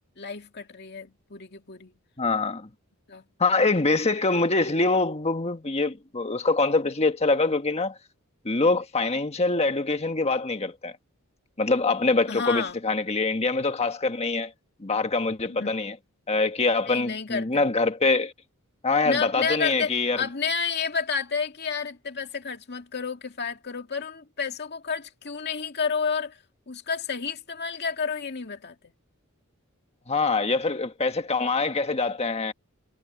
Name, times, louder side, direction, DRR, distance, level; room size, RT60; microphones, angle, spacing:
voice 1, 0.2-1.9 3.1-3.2 12.3-12.8 15.5-15.8 16.9-17.7 19.0-26.4 26.7-28.8, left 5 dB, 50° left, 2.2 m, -30 dB
voice 2, 2.2-2.7 3.4-8.0 8.4-11.0 11.6-14.5 14.8-15.9 16.3-18.3 18.8-20.2 30.1-32.5, left 3 dB, 30° left, 1.5 m, -24 dB
head